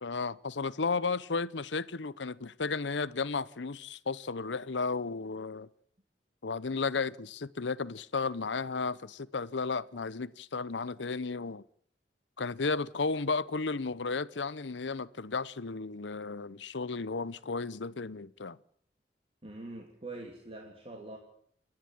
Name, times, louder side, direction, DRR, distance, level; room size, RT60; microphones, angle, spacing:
voice 1, 0.0-5.7 6.4-11.6 12.4-18.6, left 4 dB, 85° left, 0.8 m, -34 dB
voice 2, 19.4-21.2, right 2 dB, 35° right, 3.1 m, -44 dB
29.0 x 11.0 x 9.4 m
head